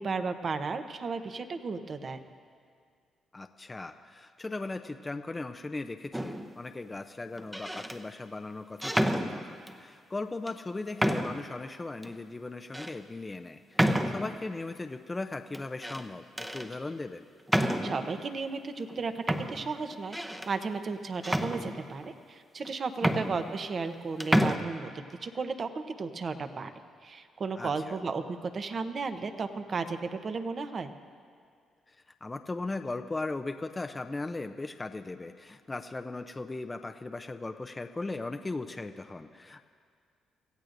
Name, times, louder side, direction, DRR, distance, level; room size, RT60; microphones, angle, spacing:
voice 1, 0.0-2.2 17.8-26.7 27.0-30.9, right 4 dB, 45° right, 9 dB, 0.9 m, -34 dB
voice 2, 3.3-17.3 23.0-23.4 27.6-28.0 31.9-32.0 32.2-39.6, left 2 dB, 20° left, 7 dB, 0.5 m, -38 dB
sound 1, 6.1-6.6 7.4-8.0 8.8-9.8 10.5-10.6 11.0-11.5 12.0-12.1 12.7-12.9 13.8-14.4 15.5-16.0 16.4-16.7 17.5-18.1 18.9-19.0 19.3-20.5 21.2-22.1 22.7-22.8 23.0-24.0 24.2-24.6, equal, 5° right, 0.8 m, -29 dB
26.0 x 15.5 x 2.6 m, 2.1 s
cardioid pair, 90°, 0 cm